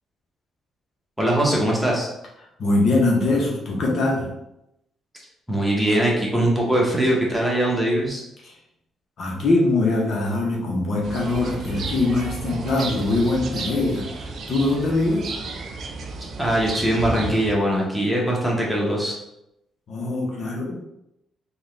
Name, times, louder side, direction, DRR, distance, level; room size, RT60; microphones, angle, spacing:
voice 1, 1.2-2.1 5.5-8.2 16.4-19.1, right 1 dB, 5° right, -3 dB, 1.1 m, -21 dB
voice 2, 2.6-4.3 8.4-8.5 9.2-15.3 19.9-20.8, left 2 dB, 60° left, -2 dB, 0.9 m, -22 dB
sound 1, 11.0-17.5, right 3 dB, 60° right, 0.5 m, -33 dB
3.8 x 2.3 x 3.3 m, 0.84 s
cardioid pair, 90°, 0 cm